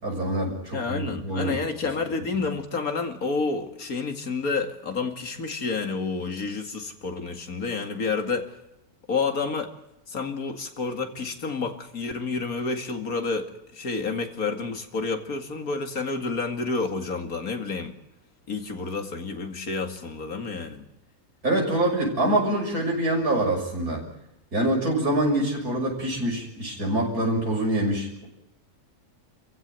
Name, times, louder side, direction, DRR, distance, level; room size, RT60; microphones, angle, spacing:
voice 1, 0.0-1.6 21.4-24.0 24.5-28.3, right 1 dB, 85° right, -1 dB, 6.9 m, -25 dB
voice 2, 0.7-8.5 9.1-9.7 10.1-17.9 18.5-20.8, left 4 dB, 75° left, 5 dB, 2.7 m, -29 dB
27.0 x 15.5 x 9.2 m, 0.86 s
omnidirectional pair, 1.5 m